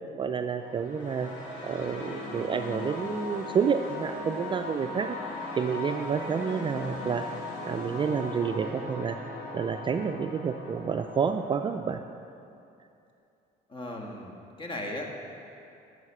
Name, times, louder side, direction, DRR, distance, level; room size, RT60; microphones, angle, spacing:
voice 1, 0.2-1.3 1.6-5.2 5.6-7.2 7.6-9.2 9.5-12.0, right 6 dB, 30° right, 6 dB, 0.3 m, -29 dB
sound 1, 0.6-11.6, left 2 dB, 90° left, 2.4 m, -38 dB
sound 2, 3.1-5.5, right 2 dB, 5° left, 1.1 m, -53 dB
voice 2, 13.7-15.1, left 1 dB, 30° left, 1 dB, 1.4 m, -37 dB
9.6 x 6.6 x 5.5 m, 2.6 s
cardioid pair, 110°, 17 cm